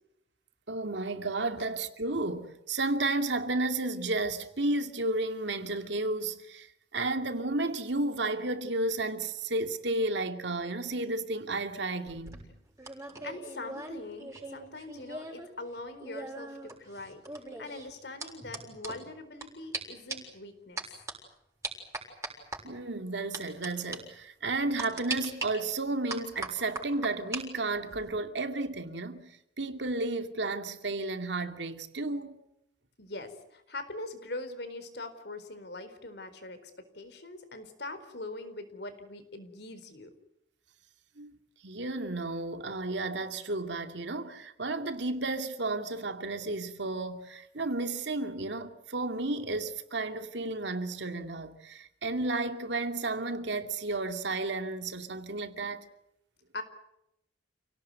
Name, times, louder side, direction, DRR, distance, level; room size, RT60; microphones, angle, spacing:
voice 1, 0.7-6.7 6.9-12.4 22.6-32.4 41.2-41.4 41.6-55.8, right 2 dB, 75° right, 2.5 m, -32 dB
sound 1, 12.1-15.5 15.7-19.5 19.7-19.8 20.1-20.4 20.8-21.1 21.6-22.6 23.3-23.7 23.9-24.0 24.8-25.5 26.1-27.4 27.7-28.1, right 2 dB, 15° right, 6.7 m, -39 dB
voice 2, 13.2-17.2 17.6-20.8 33.0-40.1 56.5-56.6, left 2 dB, 65° left, 4.3 m, -42 dB
29.0 x 18.0 x 9.6 m
head